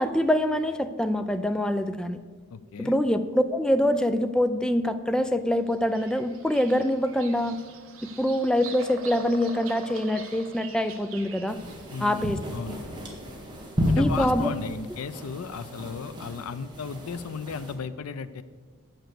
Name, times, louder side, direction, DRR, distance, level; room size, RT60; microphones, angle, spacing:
voice 1, 0.0-2.2 2.8-7.6 8.0-11.6 12.0-12.4 14.0-14.5, left 1 dB, 5° left, 9 dB, 0.3 m, -25 dB
voice 2, 2.5-3.0 11.9-12.8 13.9-18.4, left 5 dB, 85° left, 13 dB, 0.4 m, -35 dB
Bird vocalization bird call bird song, 5.7-12.3, right 4 dB, 70° right, 0.9 m, -44 dB
sound 1, 11.5-17.7, equal, 20° right, 1.5 m, -32 dB
8.1 x 6.0 x 6.6 m, 1.6 s
head